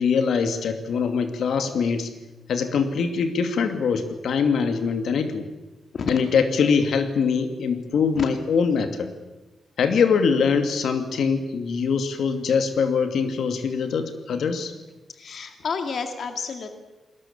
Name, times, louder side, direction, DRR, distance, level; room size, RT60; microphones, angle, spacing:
voice 1, 0.0-2.1 2.5-5.5 6.1-9.1 9.8-14.7, left 5 dB, 70° left, 7 dB, 2.4 m, -23 dB
voice 2, 15.1-16.8, left 5 dB, 50° left, 6 dB, 2.3 m, -30 dB
29.5 x 21.0 x 7.3 m, 1.1 s
wide cardioid pair, 180°, 0 cm